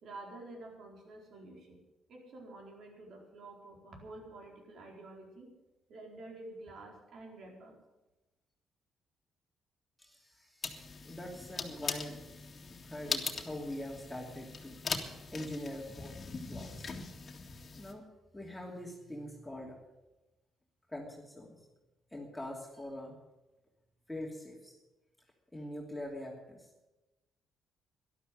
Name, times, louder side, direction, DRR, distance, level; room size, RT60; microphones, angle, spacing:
voice 1, 0.0-1.8 2.1-5.5 5.9-7.8, right 2 dB, 65° right, 1 dB, 4.4 m, -49 dB
voice 2, 10.0-14.8 15.3-16.1 16.5-16.9 17.7-18.1 18.3-19.7 20.9-21.6 22.1-23.2 24.1-24.8 25.5-26.7, left 1 dB, 10° left, -2 dB, 2.8 m, -43 dB
sound 1, 10.6-17.9, left 4 dB, 40° left, 2.0 m, -41 dB
12.5 x 12.0 x 7.8 m, 1.0 s
cardioid pair, 90°, 0 cm